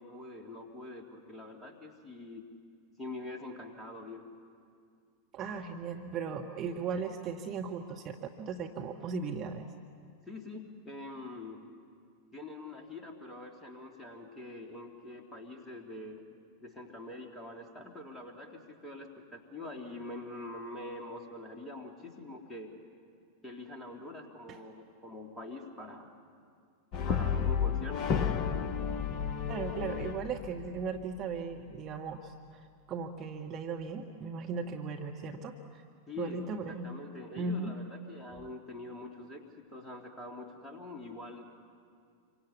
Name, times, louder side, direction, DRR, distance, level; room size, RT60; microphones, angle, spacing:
voice 1, 0.0-2.4 3.0-4.2 10.3-11.6 12.3-16.2 16.6-22.7 23.4-26.1 27.1-28.1 36.1-36.4 36.7-41.4, left 2 dB, 10° left, 1 dB, 3.3 m, -44 dB
voice 2, 5.3-9.7 24.5-24.6 29.5-35.8 36.2-36.9 37.3-37.8, right 5 dB, 30° right, 2 dB, 1.5 m, -37 dB
Brass instrument, 26.9-31.2, left 7 dB, 35° left, 0.9 m, -32 dB
27.5 x 24.5 x 8.5 m, 2.3 s
figure-of-eight pair, 90°, 0 cm